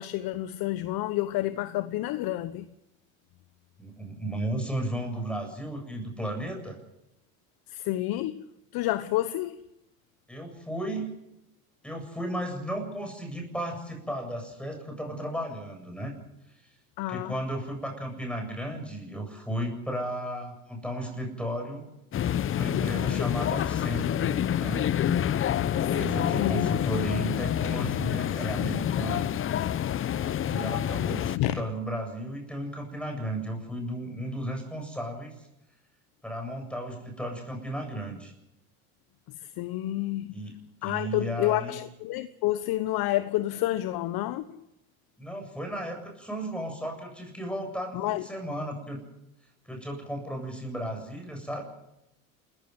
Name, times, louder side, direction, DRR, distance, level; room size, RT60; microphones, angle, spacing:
voice 1, 0.0-2.6 7.7-8.4 8.7-9.6 17.0-17.3 25.8-25.9 26.3-26.7 31.4-31.6 39.6-40.3 40.8-44.6 47.9-48.2, left 15 dB, 55° left, 1.1 m, -29 dB
voice 2, 3.8-6.8 10.3-11.1 11.8-16.2 17.1-21.9 22.5-24.9 25.7-29.3 30.4-35.5 36.2-38.3 40.3-40.5 40.8-41.8 45.2-49.0 49.6-51.7, right 1 dB, ahead, 7.8 m, -34 dB
sound 1, 22.1-31.4, left 10 dB, 30° left, 0.8 m, -27 dB
28.0 x 15.5 x 7.9 m
hypercardioid pair, 90°, 43 cm